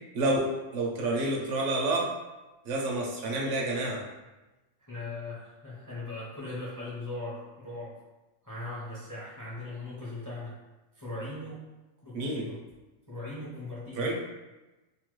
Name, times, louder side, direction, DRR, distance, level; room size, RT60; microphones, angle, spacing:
voice 1, 0.1-2.1 2.7-4.0 12.1-12.5 14.0-14.1, right 2 dB, 70° right, -1 dB, 0.9 m, -29 dB
voice 2, 4.8-8.0 8.4-10.5 11.0-11.6 12.0-12.6 13.1-14.1, left 2 dB, 25° left, -8 dB, 0.5 m, -39 dB
2.9 x 2.2 x 3.0 m, 1.1 s
omnidirectional pair, 1.4 m